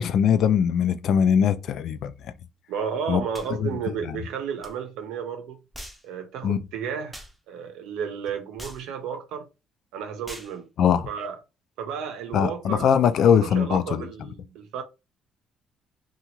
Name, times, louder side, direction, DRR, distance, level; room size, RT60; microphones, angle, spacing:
voice 1, 0.0-2.3 3.1-3.2 3.6-3.8 4.0-4.2 6.4-6.7 10.8-11.1 12.3-14.1, left 8 dB, 60° left, 0.3 m, -21 dB
voice 2, 2.7-5.6 6.0-7.2 7.5-9.5 9.9-10.7 11.1-11.4 11.8-12.9 13.4-14.8, right 7 dB, 90° right, 0.7 m, -32 dB
sound 1, 3.3-3.5 4.6-4.7 5.7-6.0 7.1-7.3 8.6-8.8 10.2-10.5, equal, ahead, 0.5 m, -41 dB
2.8 x 2.4 x 2.9 m
cardioid pair, 135°, 0 cm